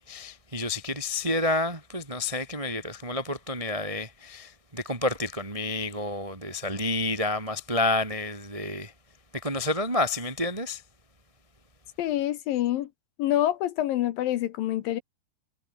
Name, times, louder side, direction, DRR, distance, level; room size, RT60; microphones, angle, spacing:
voice 1, 0.0-8.9 9.3-10.8, left 2 dB, 40° right, 0.4 m, -29 dB
voice 2, 12.0-12.9 13.2-15.0, left 13 dB, 75° left, 2.4 m, -26 dB
omnidirectional pair, 4.8 m